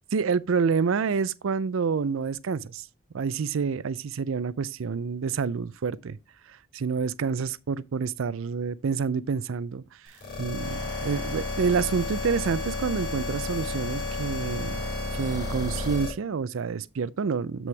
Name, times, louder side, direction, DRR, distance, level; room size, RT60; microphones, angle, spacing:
voice 1, 0.1-2.9 3.1-6.2 6.7-9.8 10.4-14.8 15.2-17.7, right 5 dB, 70° right, 0.4 m, -28 dB
sound 1, 10.1-16.1, left 2 dB, 50° left, 4.7 m, -32 dB
7.7 x 6.1 x 3.3 m
head